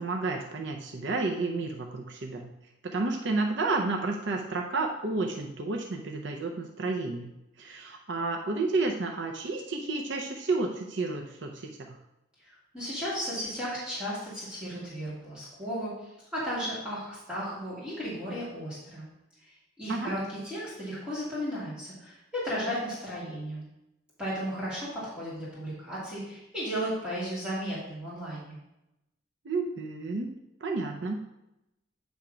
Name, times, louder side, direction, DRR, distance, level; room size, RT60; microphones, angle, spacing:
voice 1, 0.0-2.5 2.9-12.0 19.9-20.1 29.4-31.2, right 3 dB, 60° right, 2 dB, 0.6 m, -31 dB
voice 2, 12.4-19.1 19.4-23.6 24.2-28.6, equal, 5° right, -10 dB, 2.3 m, -35 dB
8.7 x 3.5 x 5.0 m, 0.90 s
head